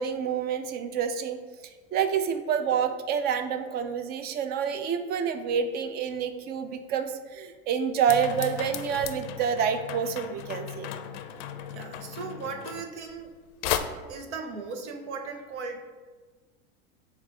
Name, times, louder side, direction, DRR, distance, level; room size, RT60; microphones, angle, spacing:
voice 1, 0.0-1.4 1.9-10.9, right 7 dB, 30° right, 10 dB, 0.4 m, -28 dB
sound 1, 8.1-13.3 13.6-13.8, left 10 dB, 60° left, 0.5 m, -35 dB
voice 2, 11.4-13.3 14.1-15.8, right 4 dB, 85° right, 5 dB, 0.7 m, -38 dB
7.0 x 2.4 x 2.8 m, 1.4 s
hypercardioid pair, 105°, 33 cm